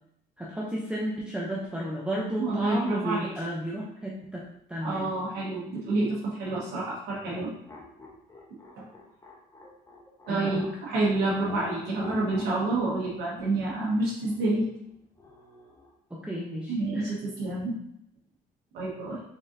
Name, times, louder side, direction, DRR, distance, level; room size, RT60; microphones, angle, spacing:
voice 1, 0.4-4.4 4.7-5.1 10.3-10.6 16.1-17.1, equal, 5° right, -4 dB, 0.6 m, -33 dB
voice 2, 2.4-3.3 4.8-7.5 8.8-8.9 10.3-14.7 16.7-17.7 18.7-19.2, right 2 dB, 80° right, -6 dB, 1.2 m, -28 dB
sound 1, 7.2-10.8 11.4-15.9, left 2 dB, 20° left, 0.8 m, -45 dB
4.0 x 3.7 x 2.6 m, 0.74 s
cardioid pair, 110°, 17 cm